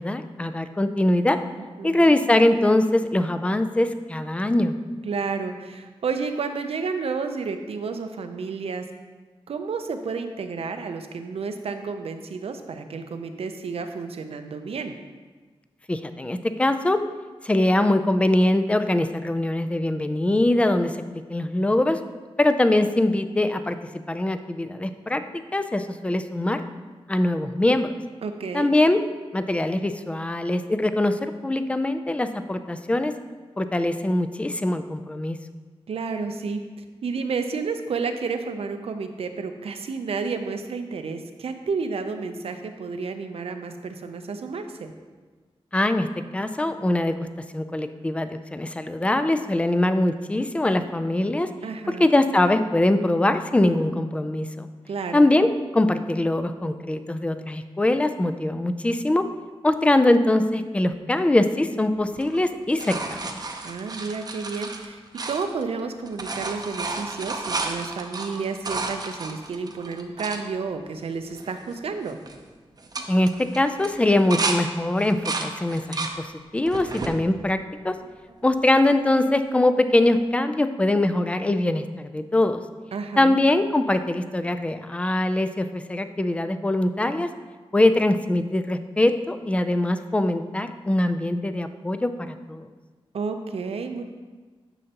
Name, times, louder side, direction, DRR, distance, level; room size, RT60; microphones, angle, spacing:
voice 1, 0.0-1.4 1.8-4.8 15.9-17.0 17.4-22.0 22.4-23.8 24.1-25.2 25.5-26.6 27.1-27.9 28.5-29.0 29.3-33.1 33.6-35.4 45.7-46.1 46.3-47.3 47.5-51.5 52.0-54.7 55.1-59.2 59.6-63.2 73.1-73.3 73.5-78.0 78.4-82.6 83.2-87.3 87.7-92.7, left 1 dB, 10° left, 9 dB, 0.4 m, -22 dB
voice 2, 1.6-2.1 5.0-8.8 9.5-15.0 28.2-28.7 35.9-44.9 51.6-52.1 54.9-55.2 63.6-72.2 82.9-83.4 93.1-94.0, right 4 dB, 80° right, 7 dB, 0.6 m, -31 dB
sound 1, 62.1-65.8 66.1-70.4 71.0-71.1 71.3-71.7 72.0-72.4 72.8-74.6 75.0-76.2 76.7-77.2 77.8-78.5 80.1-80.2, right 3 dB, 40° right, 0.7 m, -32 dB
9.9 x 6.5 x 2.9 m, 1.4 s
wide cardioid pair, 120°, 10 cm